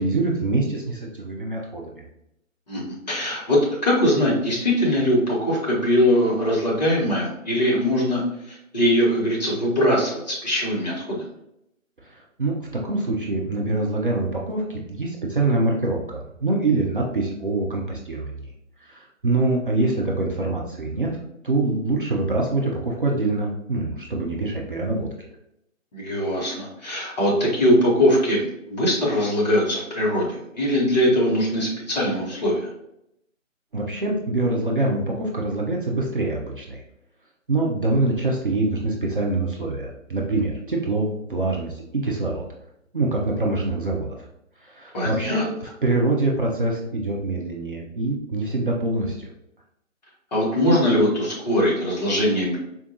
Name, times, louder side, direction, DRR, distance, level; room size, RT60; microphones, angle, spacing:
voice 1, 0.0-2.0 12.0-18.4 18.8-21.1 21.4-25.3 33.7-36.8 37.5-42.5 42.9-44.1 44.6-49.3, right 2 dB, 40° right, -2 dB, 0.5 m, -25 dB
voice 2, 3.1-8.2 8.5-11.3 25.9-32.7 44.9-45.4 50.3-52.6, equal, 30° left, -5 dB, 1.0 m, -21 dB
4.3 x 2.2 x 2.7 m, 0.80 s
figure-of-eight pair, 145°, 40 cm